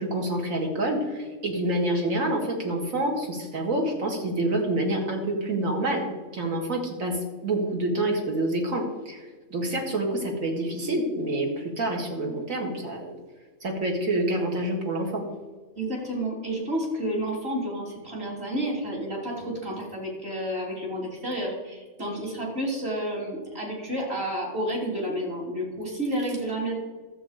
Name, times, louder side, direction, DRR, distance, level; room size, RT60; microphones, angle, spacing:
voice 1, 0.0-6.1 6.3-7.2 7.4-9.2 9.5-13.1 13.6-15.2, right 1 dB, 70° right, 1 dB, 2.3 m, -27 dB
voice 2, 15.8-26.7, right 1 dB, 45° right, -4 dB, 3.3 m, -30 dB
12.5 x 7.7 x 4.9 m, 1.3 s
omnidirectional pair, 1.4 m